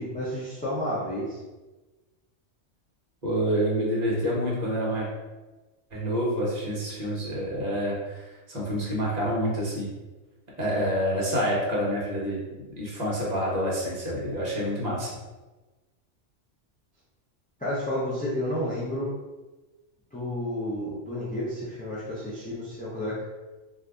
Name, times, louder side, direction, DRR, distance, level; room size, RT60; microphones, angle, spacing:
voice 1, 0.0-1.4 17.6-19.1 20.1-23.2, left 1 dB, 10° left, -8 dB, 0.4 m, -31 dB
voice 2, 3.2-5.1 5.9-8.2 8.5-9.9 10.6-12.4 12.7-15.1, equal, 40° right, -5 dB, 1.0 m, -27 dB
2.6 x 2.5 x 3.4 m, 1.2 s
omnidirectional pair, 1.2 m